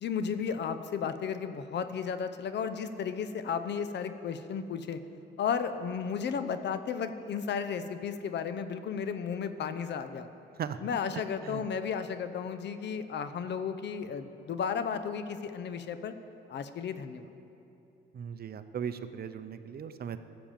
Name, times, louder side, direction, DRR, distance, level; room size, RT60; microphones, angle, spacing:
voice 1, 0.0-5.0 5.4-10.3 10.8-16.1 16.5-17.3, left 6 dB, 60° left, 10 dB, 0.8 m, -34 dB
voice 2, 11.1-11.6 18.1-20.2, right 8 dB, 50° right, 11 dB, 0.7 m, -38 dB
15.0 x 7.1 x 7.3 m, 2.9 s
cardioid pair, 90°, 20 cm